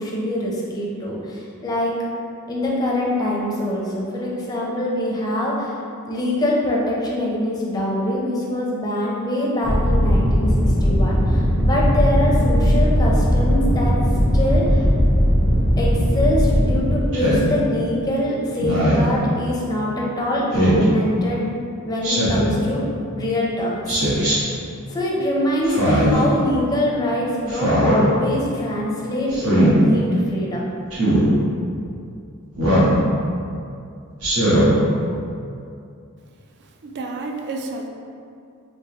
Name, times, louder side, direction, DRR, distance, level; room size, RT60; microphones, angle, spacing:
voice 1, 0.0-2.0 2.5-5.7 6.1-10.5 10.8-14.0 14.3-14.8 15.8-21.4 21.8-22.8 23.1-24.4 24.9-30.6, left 1 dB, 15° left, -4 dB, 0.5 m, -24 dB
sound 1, 9.6-16.8, equal, 30° right, 0.9 m, -18 dB
Speech synthesizer, 17.1-17.5 18.6-19.1 20.5-20.8 22.0-22.5 23.9-24.4 25.6-26.2 27.5-28.0 29.3-29.7 30.9-31.2 32.6-33.0 34.2-34.7, right 1 dB, 70° right, 1.1 m, -18 dB
voice 2, 36.6-37.9, right 3 dB, 50° right, 3 dB, 0.3 m, -31 dB
3.4 x 3.0 x 2.9 m, 2.5 s
head